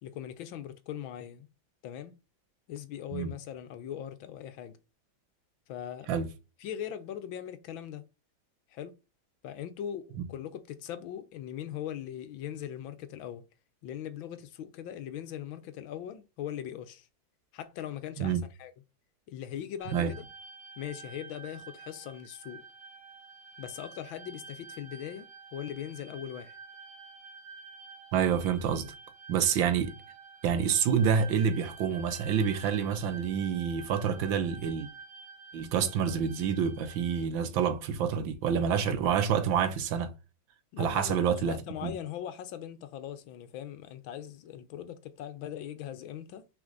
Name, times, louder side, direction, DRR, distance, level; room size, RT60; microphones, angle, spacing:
voice 1, 0.0-1.5 1.8-2.1 2.7-4.8 5.7-6.1 6.6-8.1 8.7-8.9 9.4-13.5 13.8-17.1 17.5-18.7 19.3-20.2 20.8-22.7 23.6-26.6 40.7-46.5, left 10 dB, 85° left, 1.6 m, -40 dB
sound 1, 19.8-37.3, right 5 dB, 55° right, 1.9 m, -49 dB
voice 2, 28.1-28.9 29.3-29.9 30.4-34.9 35.5-40.1 40.8-41.9, right 7 dB, 80° right, 1.6 m, -28 dB
6.2 x 4.3 x 3.8 m
omnidirectional pair, 2.1 m